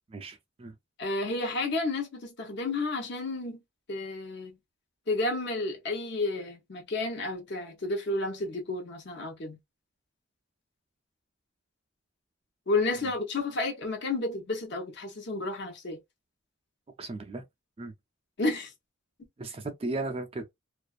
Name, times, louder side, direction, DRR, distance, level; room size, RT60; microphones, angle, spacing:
voice 1, 0.1-0.7 17.0-17.4 17.8-17.9 19.4-20.5, right 2 dB, 25° right, 0.4 m, -36 dB
voice 2, 1.0-3.6 3.9-4.6 5.1-9.6 12.7-16.0 18.4-18.7, left 2 dB, 55° left, 0.8 m, -31 dB
2.4 x 2.4 x 2.3 m
head